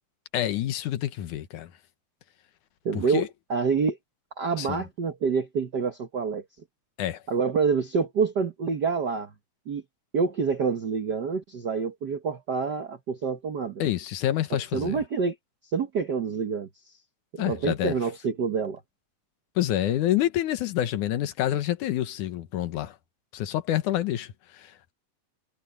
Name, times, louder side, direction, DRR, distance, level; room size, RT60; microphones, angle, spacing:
voice 1, 0.3-1.7 2.9-3.3 4.6-4.8 7.0-7.2 13.8-15.0 17.4-17.9 19.6-23.0 23.3-24.9, left 12 dB, 80° left, 2.6 m, -27 dB
voice 2, 2.8-4.0 4.4-6.4 7.3-9.3 9.7-9.8 10.1-13.8 14.5-15.4 15.7-16.7 17.3-18.8, right 5 dB, 65° right, 1.0 m, -27 dB
omnidirectional pair, 3.5 m